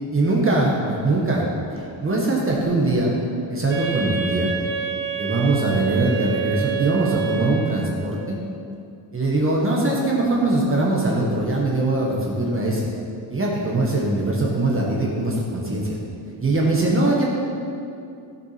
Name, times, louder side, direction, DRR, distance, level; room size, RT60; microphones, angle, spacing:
voice 1, 0.1-1.5 1.7-3.1 3.5-4.5 5.2-8.4 9.1-12.9 13.3-16.0 16.4-17.2, right 2 dB, 25° right, -3 dB, 1.3 m, -21 dB
Wind instrument woodwind instrument, 3.7-8.1, right 8 dB, 70° right, 1.8 m, -28 dB
13.0 x 7.0 x 5.8 m, 2.6 s
wide cardioid pair, 175°, 47 cm